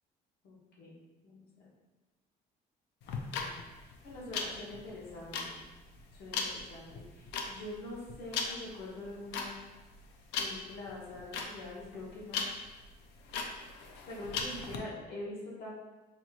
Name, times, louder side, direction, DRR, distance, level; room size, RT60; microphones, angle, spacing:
voice 1, 0.4-1.0 1.2-1.7 3.1-3.6 4.0-5.6 6.1-9.5 10.4-12.4 14.0-15.7, left 2 dB, 65° left, -4 dB, 1.2 m, -44 dB
sound 1, 3.0-14.8, left 5 dB, 90° left, 0.5 m, -38 dB
5.6 x 3.0 x 2.4 m, 1.1 s
cardioid pair, 110°, 17 cm